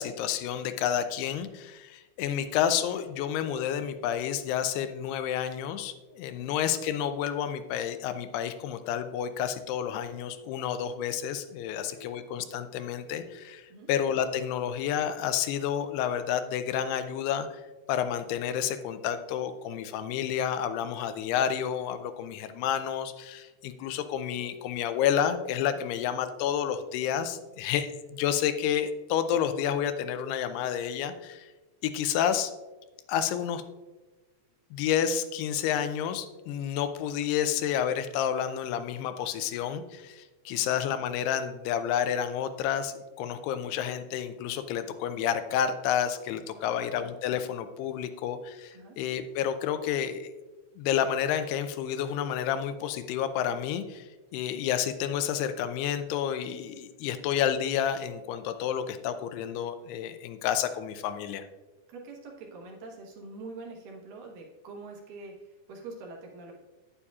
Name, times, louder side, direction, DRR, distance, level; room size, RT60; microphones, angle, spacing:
voice 1, 0.0-17.5 17.9-31.5 31.8-32.5 33.1-33.6 34.7-50.3 50.8-54.1 54.3-61.4, left 9 dB, 85° left, 10 dB, 2.7 m, -30 dB
voice 2, 11.7-12.1 13.7-13.9 25.8-25.9 40.5-40.7 46.5-46.9 48.7-49.0 61.9-66.5, right 3 dB, 65° right, -1 dB, 2.8 m, -45 dB
9.8 x 9.6 x 2.4 m, 1.2 s
omnidirectional pair, 4.6 m